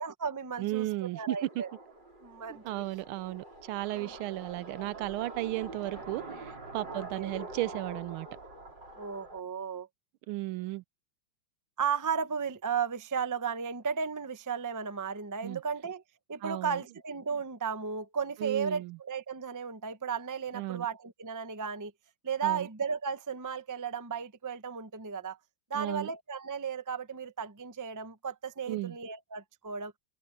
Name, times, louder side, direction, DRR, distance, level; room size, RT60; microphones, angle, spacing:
voice 1, 0.0-1.7 2.2-2.8 3.9-4.2 6.9-7.3 9.0-9.9 11.8-16.0 16.3-21.9 22.2-25.4 25.7-29.9, right 6 dB, 25° right, 0.4 m, -35 dB
voice 2, 0.6-1.5 2.5-8.3 10.3-10.8 15.4-15.6 16.4-16.8 18.4-19.0 20.5-20.9 22.4-22.7 25.7-26.1 28.7-29.0, right 17 dB, 90° right, 1.5 m, -35 dB
sound 1, 1.1-9.4, right 2 dB, 55° right, 6.3 m, -45 dB
omnidirectional pair, 2.2 m